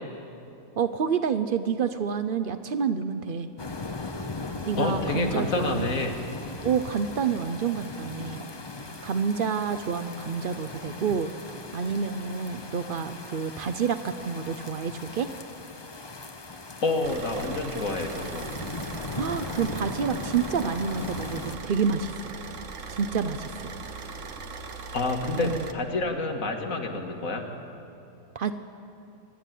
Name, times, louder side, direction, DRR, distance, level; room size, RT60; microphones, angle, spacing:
voice 1, 0.8-3.5 4.7-5.9 6.6-8.4 9.0-11.3 11.7-15.3 19.2-22.3 22.9-23.7 25.4-25.6 28.3-28.5, right 6 dB, 90° right, 11 dB, 0.4 m, -28 dB
sound 1, 3.6-21.6, left 3 dB, 30° left, 0.5 m, -38 dB
voice 2, 4.8-6.1 16.8-18.5 24.9-27.4, left 3 dB, 55° left, 3 dB, 2.1 m, -28 dB
Car / Idling, 17.0-25.7, right 4 dB, 50° right, 1.3 m, -39 dB
24.5 x 11.5 x 9.2 m, 2.8 s
omnidirectional pair, 1.8 m